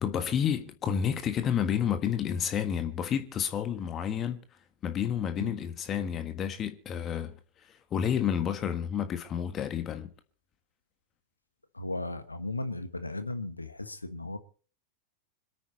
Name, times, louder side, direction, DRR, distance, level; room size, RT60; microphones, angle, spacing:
voice 1, 0.0-4.4 4.8-10.1, left 8 dB, 30° left, 1.6 m, -30 dB
voice 2, 11.7-14.4, left 2 dB, 85° left, 1.3 m, -36 dB
26.5 x 9.2 x 4.2 m
figure-of-eight pair, 90°, 0 cm